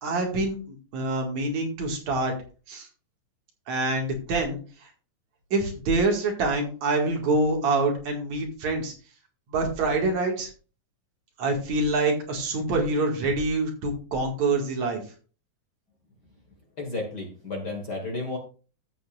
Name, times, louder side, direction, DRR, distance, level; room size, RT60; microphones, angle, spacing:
voice 1, 0.0-2.3 2.7-2.9 3.7-4.6 5.5-8.9 9.5-10.5 11.4-15.0, right 2 dB, 65° right, 2 dB, 3.2 m, -26 dB
voice 2, 16.8-18.4, left 2 dB, 40° left, 1 dB, 1.8 m, -32 dB
13.5 x 8.2 x 2.5 m, 0.37 s
omnidirectional pair, 3.5 m